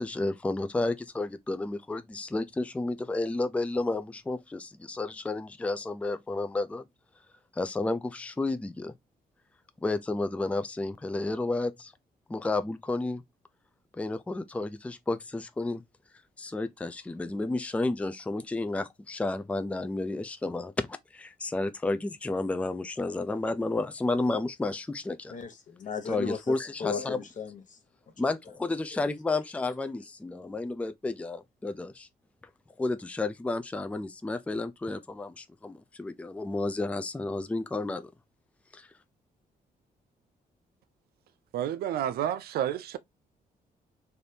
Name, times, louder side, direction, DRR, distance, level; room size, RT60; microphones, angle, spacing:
voice 1, 0.0-6.9 7.5-8.9 9.8-11.9 12.3-13.2 14.0-15.8 16.4-20.9 21.1-25.4 26.1-27.2 28.2-32.1 32.8-38.1 38.7-38.9, left 2 dB, 10° left, 0.4 m, -31 dB
voice 2, 25.3-27.8, left 6 dB, 55° left, 1.0 m, -36 dB
voice 3, 41.5-43.0, right 10 dB, 85° right, 0.4 m, -30 dB
3.3 x 2.6 x 2.7 m
cardioid pair, 90°, 16 cm